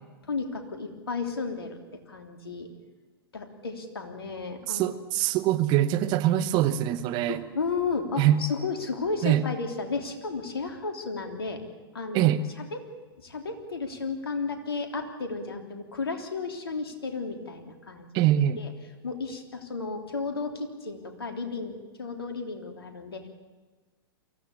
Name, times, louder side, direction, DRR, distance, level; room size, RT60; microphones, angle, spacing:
voice 1, 0.3-1.8 2.1-2.7 3.3-4.9 7.3-11.6 11.9-12.3 12.6-12.8 13.2-18.7 19.0-23.3, left 4 dB, 75° left, 4 dB, 3.3 m, -33 dB
voice 2, 4.7-7.4 8.2-8.4 9.2-9.4 12.1-12.4 18.1-18.6, right 12 dB, 35° right, 13 dB, 1.2 m, -23 dB
23.5 x 16.0 x 8.5 m, 1.3 s
figure-of-eight pair, 105°, 13 cm